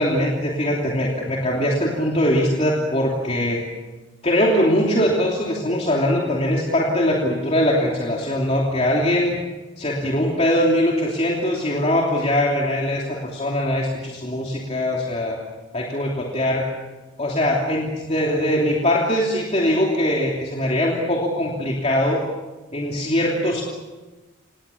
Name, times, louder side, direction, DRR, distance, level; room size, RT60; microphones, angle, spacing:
voice 1, 0.0-3.7 4.2-9.4 9.8-15.4 15.7-16.7 17.2-22.2 22.7-23.6, left 1 dB, 30° left, -2 dB, 3.0 m, -21 dB
27.5 x 19.5 x 7.1 m, 1.2 s
head